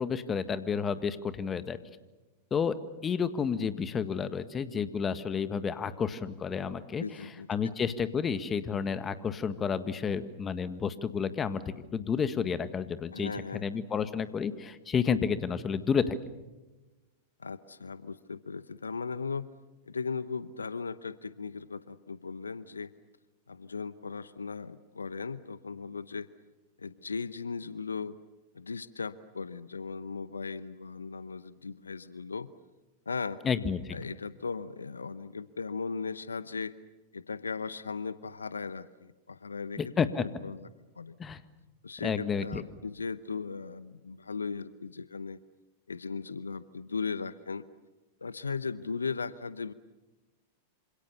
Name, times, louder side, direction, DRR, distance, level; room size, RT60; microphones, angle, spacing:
voice 1, 0.0-1.8 2.5-2.7 3.0-7.0 7.5-13.3 13.6-16.1 33.4-34.0 39.8-40.2 41.2-41.4 42.0-42.6, left 6 dB, 25° left, 12 dB, 1.7 m, -30 dB
voice 2, 7.0-7.5 13.1-13.8 17.4-19.5 19.8-22.9 23.5-26.3 26.8-28.1 28.5-32.5 33.1-33.4 33.9-36.7 37.1-39.9 40.2-40.7 41.0-41.1 41.8-45.4 45.9-47.6 48.2-49.7, left 5 dB, 85° left, 16 dB, 0.8 m, -37 dB
27.5 x 26.5 x 6.9 m, 1.1 s
figure-of-eight pair, 95°, 0 cm